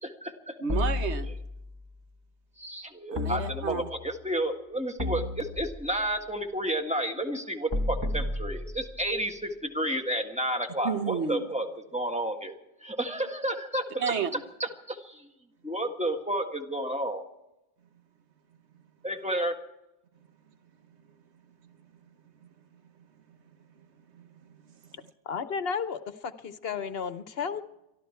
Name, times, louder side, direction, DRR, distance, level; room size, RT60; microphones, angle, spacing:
voice 1, 0.0-0.5 2.6-11.7 11.9-12.5 12.8-14.1 14.6-15.3 15.6-17.2 19.0-19.6, right 1 dB, 5° right, 1.6 m, -31 dB
voice 2, 0.6-1.3 3.1-3.9 10.8-11.4 14.0-14.4 22.4-22.5 23.3-23.4 23.8-23.9 24.1-25.1, right 6 dB, 80° right, 1.3 m, -32 dB
sound 1, 0.7-1.8 3.2-4.1 5.0-6.1 7.7-9.1, left 2 dB, 20° right, 1.2 m, -32 dB
voice 3, 25.3-27.6, left 6 dB, 65° left, 1.0 m, -33 dB
23.5 x 13.5 x 4.5 m
omnidirectional pair, 1.1 m